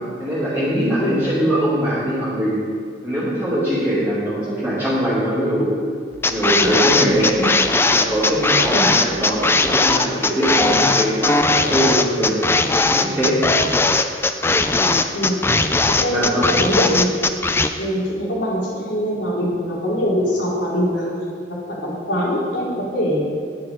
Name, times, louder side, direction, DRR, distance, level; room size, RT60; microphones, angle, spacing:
voice 1, 0.2-2.6 3.0-5.8 6.2-7.6 7.8-12.5 12.9-13.4 16.1-16.5, equal, 10° right, -11 dB, 2.3 m, -21 dB
sound 1, 6.2-17.7, left 3 dB, 15° left, 0.4 m, -18 dB
voice 2, 15.9-17.1 17.8-21.1 21.7-23.3, equal, 90° left, -5 dB, 3.3 m, -22 dB
9.7 x 9.3 x 5.1 m, 2.1 s
head